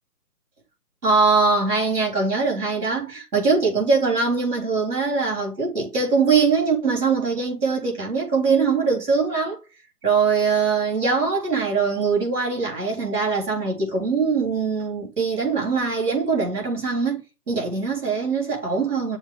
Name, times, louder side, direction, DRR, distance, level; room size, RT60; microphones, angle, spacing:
voice 1, 1.0-9.6 10.0-19.2, right 4 dB, 80° right, 4.0 m, -22 dB
7.2 x 2.8 x 5.5 m
figure-of-eight pair, 155°, 46 cm